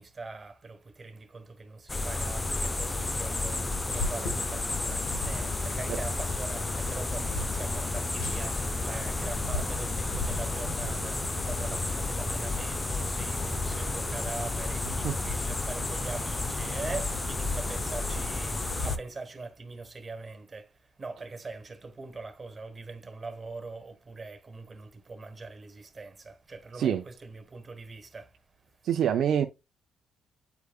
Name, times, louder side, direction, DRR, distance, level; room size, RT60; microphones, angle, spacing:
voice 1, 0.0-28.7, right 3 dB, 35° right, 1.6 m, -42 dB
sound 1, 1.9-19.0, left 2 dB, 20° left, 0.7 m, -32 dB
sound 2, 3.9-18.9, left 2 dB, 75° left, 1.6 m, -40 dB
sound 3, 8.2-18.0, equal, 5° right, 1.3 m, -48 dB
voice 2, 28.8-29.5, right 9 dB, 70° right, 0.6 m, -25 dB
8.2 x 4.8 x 2.4 m
supercardioid pair, 60°, 0 cm